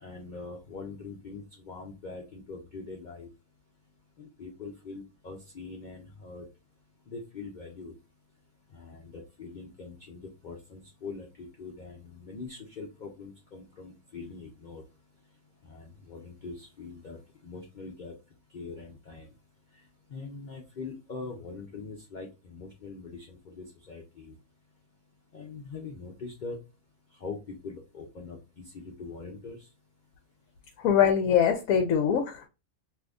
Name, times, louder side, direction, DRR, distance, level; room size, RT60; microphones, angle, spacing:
voice 1, 0.0-3.3 4.2-6.5 7.1-7.9 8.7-14.8 15.7-18.1 18.5-19.3 20.1-24.3 25.3-26.6 27.2-29.7, left 4 dB, 55° left, 0.5 m, -42 dB
voice 2, 30.8-32.5, left 8 dB, 70° left, 1.0 m, -23 dB
2.7 x 2.6 x 3.4 m
omnidirectional pair, 1.6 m